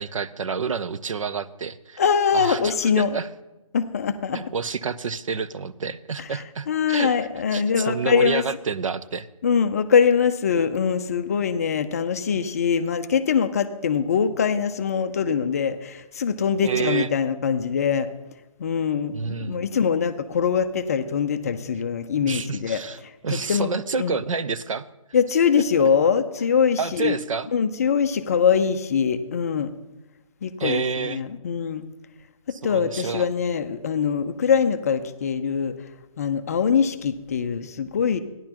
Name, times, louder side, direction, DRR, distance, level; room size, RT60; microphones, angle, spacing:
voice 1, 0.0-2.0 2.3-3.3 4.3-7.2 7.5-9.3 16.6-17.1 19.1-19.6 22.2-24.9 26.8-27.5 30.6-31.2 32.5-33.3, right 5 dB, 65° right, 14 dB, 0.6 m, -29 dB
voice 2, 2.0-3.1 3.7-4.4 6.3-8.4 9.4-18.1 18.6-23.1 23.5-23.7 24.0-24.2 25.1-27.2 27.5-29.7 30.4-31.9 32.6-35.7 36.2-38.2, left 6 dB, 25° left, 9 dB, 0.4 m, -23 dB
15.0 x 10.5 x 2.9 m, 1.0 s
figure-of-eight pair, 150°, 18 cm